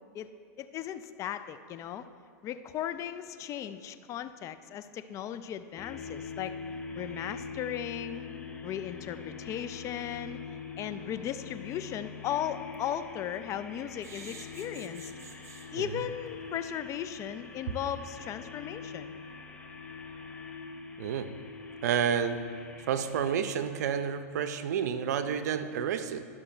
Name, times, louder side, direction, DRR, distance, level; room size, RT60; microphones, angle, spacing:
voice 1, 0.6-2.1 2.4-6.5 7.0-8.3 8.6-10.4 10.8-15.1 15.7-19.2, left 10 dB, 35° left, 11 dB, 0.4 m, -37 dB
sound 1, 5.8-24.1, left 5 dB, 15° left, 0.8 m, -44 dB
sound 2, 11.7-11.8 12.2-12.3 12.7-12.9 14.0-15.7 16.3-16.4 16.7-16.8 17.2-17.3, right 6 dB, 35° right, 0.9 m, -50 dB
voice 2, 21.0-21.3 21.8-22.4 22.9-26.3, right 8 dB, 75° right, 10 dB, 0.6 m, -30 dB
12.0 x 6.0 x 4.4 m, 2.2 s
hypercardioid pair, 120°, 9 cm